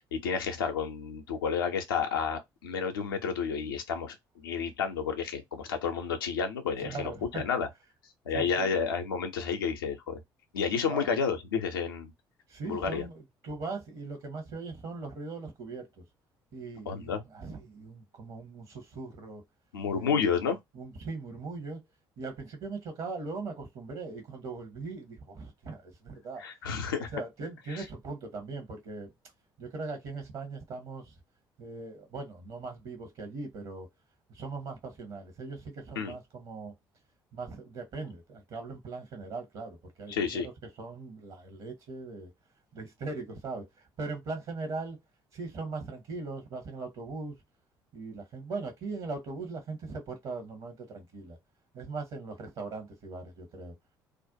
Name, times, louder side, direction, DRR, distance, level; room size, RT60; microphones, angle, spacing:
voice 1, 0.0-7.7 8.3-10.2 10.5-12.1 12.6-13.0 16.9-17.2 19.7-20.6 26.4-27.1 27.7-27.8 35.9-36.1 40.1-40.5, left 6 dB, 75° left, 0.5 m, -31 dB
voice 2, 6.8-7.5 8.3-8.8 10.8-11.1 12.5-16.0 16.5-19.4 19.9-20.3 20.7-21.8 22.2-26.4 27.1-29.1 29.6-31.1 31.6-33.9 34.3-36.7 37.3-40.5 40.8-42.3 42.7-43.7 44.0-45.0 45.3-47.3 47.9-51.4 51.7-53.7, right 3 dB, 50° right, 0.9 m, -40 dB
2.5 x 2.1 x 2.6 m
figure-of-eight pair, 50°, 12 cm